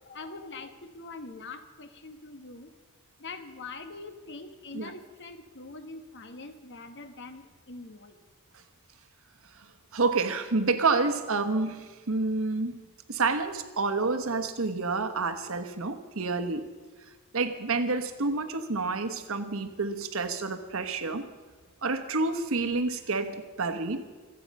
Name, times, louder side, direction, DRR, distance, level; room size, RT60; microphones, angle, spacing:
voice 1, 0.0-2.7 3.2-8.2, left 3 dB, 55° left, 8 dB, 1.2 m, -43 dB
voice 2, 9.9-12.8 13.1-16.6 17.3-21.3 21.8-24.0, right 3 dB, 70° right, 9 dB, 1.2 m, -29 dB
26.0 x 9.0 x 5.4 m, 1.4 s
head